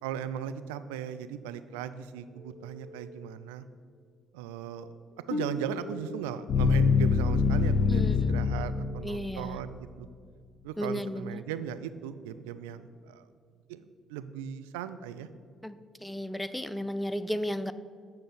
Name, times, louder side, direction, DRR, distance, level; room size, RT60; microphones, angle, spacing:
voice 1, 0.0-3.6 4.3-4.9 5.3-10.1 10.6-13.2 13.7-13.8 14.1-15.3, right 9 dB, 75° right, 11 dB, 0.3 m, -37 dB
Telephone, 2.2-3.2 5.1-6.1 8.1-9.1, right 1 dB, 50° right, 1.9 m, -51 dB
sound 1, 5.3-9.4, left 5 dB, 55° left, 0.6 m, -26 dB
voice 2, 7.9-8.5 9.0-9.6 10.8-11.4 15.6-17.7, equal, 5° left, 13 dB, 0.4 m, -34 dB
7.7 x 5.2 x 5.8 m, 2.1 s
figure-of-eight pair, 45°, 0 cm